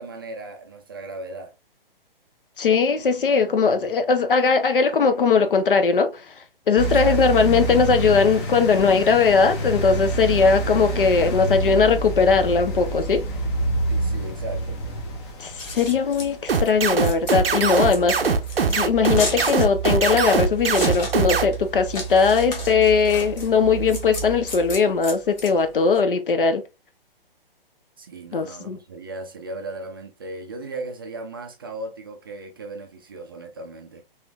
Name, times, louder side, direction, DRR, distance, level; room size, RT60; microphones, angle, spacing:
voice 1, 0.0-1.5 6.8-7.2 13.9-14.8 28.0-34.0, right 2 dB, 25° right, 0.3 m, -36 dB
voice 2, 2.6-6.3 6.7-13.2 15.4-18.3 18.7-26.6 28.3-28.8, left 5 dB, 65° left, 0.6 m, -19 dB
sound 1, 6.8-24.8, right 2 dB, 30° left, 0.7 m, -29 dB
Scissors, 15.4-26.0, left 3 dB, 50° left, 1.4 m, -35 dB
sound 2, 16.5-21.4, right 5 dB, 80° right, 0.5 m, -21 dB
3.1 x 3.0 x 2.2 m
figure-of-eight pair, 125°, 29 cm